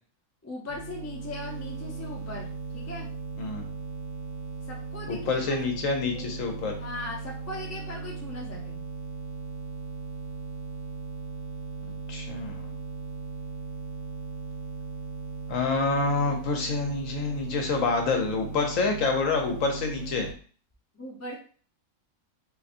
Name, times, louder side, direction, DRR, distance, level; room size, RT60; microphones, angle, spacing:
voice 1, 0.4-3.1 4.7-5.6 6.1-6.3 6.8-8.8 20.9-21.3, left 2 dB, 20° left, -2 dB, 0.4 m, -39 dB
sound 1, 0.7-20.3, right 3 dB, 65° right, 0.8 m, -37 dB
voice 2, 3.4-3.7 5.1-6.8 12.1-12.7 15.5-20.3, left 4 dB, 70° left, 3 dB, 1.0 m, -27 dB
3.8 x 2.6 x 2.4 m, 0.43 s
omnidirectional pair, 1.5 m